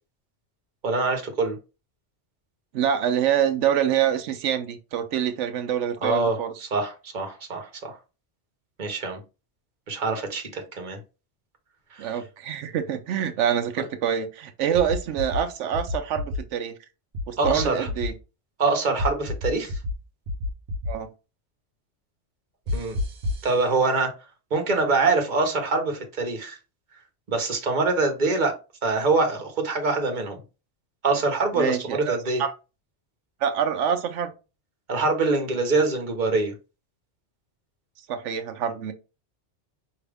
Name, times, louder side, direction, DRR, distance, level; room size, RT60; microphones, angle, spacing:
voice 1, 0.8-1.6 6.0-7.9 8.8-9.2 9.9-11.0 11.9-12.2 17.4-17.9 18.6-19.8 22.7-23.0 23.4-24.1 24.5-26.6 27.3-28.5 28.8-30.4 31.0-32.4 34.9-36.5, right 3 dB, 40° right, 1.1 m, -24 dB
voice 2, 2.7-6.5 12.0-16.8 17.3-18.1 20.9-21.1 31.6-32.5 33.4-34.3 38.1-38.9, right 9 dB, 90° right, 1.0 m, -26 dB
sound 1, 14.7-15.4 15.7-16.4 17.1-18.1 19.0-19.9 20.3-20.9 22.7-23.5, left 2 dB, 65° right, 1.1 m, -28 dB
4.9 x 2.8 x 3.4 m
omnidirectional pair, 1.2 m